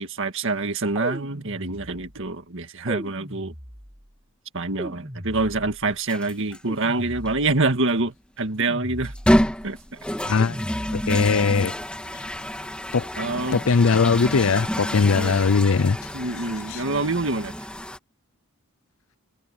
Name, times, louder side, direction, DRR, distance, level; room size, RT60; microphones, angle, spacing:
voice 1, 0.0-3.5 4.5-9.1 9.6-9.8 13.2-13.6 15.1-15.5 16.1-17.5, right 3 dB, 60° right, 1.9 m, -26 dB
sound 1, 0.9-2.2 2.9-4.0 4.8-5.9 6.7-7.7 8.6-9.5 10.4-11.3, equal, 20° right, 5.8 m, -37 dB
sound 2, 6.1-6.6 7.3-7.4 9.0-18.0, equal, 5° left, 2.0 m, -28 dB
voice 2, 10.2-10.6 10.9-11.7 12.9-13.1 13.5-16.0 16.7-16.8, left 5 dB, 65° left, 0.6 m, -20 dB
head